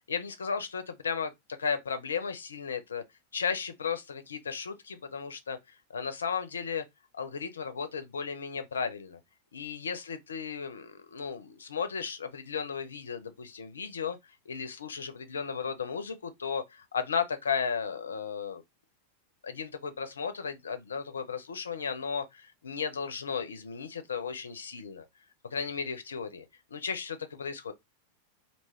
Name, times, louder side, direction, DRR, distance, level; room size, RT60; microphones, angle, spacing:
voice 1, 0.1-1.3 1.6-3.0 3.3-5.6 5.9-6.8 7.1-9.2 9.5-14.2 14.5-18.6 19.4-25.1 25.5-27.7, left 6 dB, 70° left, 0.5 m, -35 dB
2.4 x 2.3 x 3.3 m
figure-of-eight pair, 90°, 0 cm